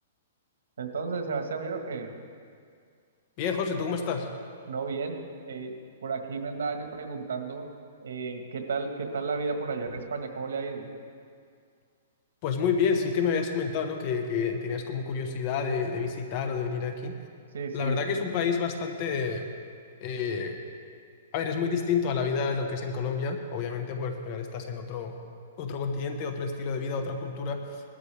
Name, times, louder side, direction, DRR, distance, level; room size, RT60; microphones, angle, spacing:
voice 1, 0.8-2.1 4.7-5.2 5.5-7.6 8.0-10.9 17.5-18.0, right 4 dB, 85° right, 4 dB, 1.6 m, -33 dB
voice 2, 3.4-4.3 12.4-17.2 17.7-19.5 20.0-20.6 21.3-25.2 25.6-27.8, left 5 dB, 35° left, 5 dB, 1.3 m, -29 dB
19.0 x 12.5 x 3.5 m, 2.2 s
hypercardioid pair, 160°, 0 cm